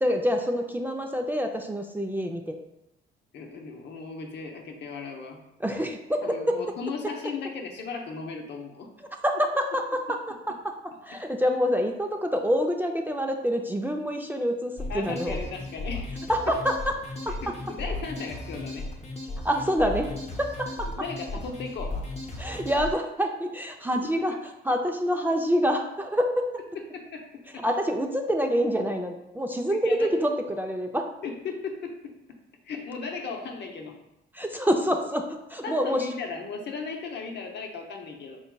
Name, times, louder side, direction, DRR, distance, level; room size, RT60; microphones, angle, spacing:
voice 1, 0.0-2.6 5.6-6.2 6.5-6.6 9.2-9.8 11.0-15.4 16.3-16.9 17.3-17.4 19.4-20.1 20.4-20.9 22.4-24.3 24.7-26.5 27.6-31.1 34.3-36.1, equal, 10° right, 2 dB, 0.4 m, -26 dB
voice 2, 3.3-5.4 6.2-8.9 10.1-10.2 14.9-16.1 17.3-18.9 21.0-22.0 24.2-24.3 26.7-27.6 29.8-30.1 31.2-32.1 32.6-33.9 35.6-38.4, left 4 dB, 60° left, 2 dB, 0.7 m, -36 dB
sound 1, 14.8-22.9, left 2 dB, 35° left, 0.9 m, -36 dB
4.7 x 3.9 x 2.2 m, 0.87 s
cardioid pair, 90°, 20 cm